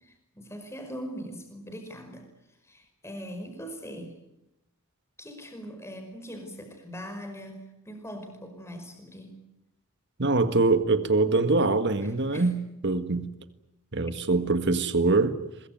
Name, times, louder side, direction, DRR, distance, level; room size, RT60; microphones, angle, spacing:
voice 1, 0.0-2.3 2.6-4.2 5.2-9.4 12.0-12.5, equal, 10° left, 6 dB, 5.2 m, -41 dB
voice 2, 10.2-13.3 13.9-15.3, right 3 dB, 50° right, 10 dB, 1.7 m, -24 dB
23.0 x 22.5 x 9.3 m, 0.88 s
head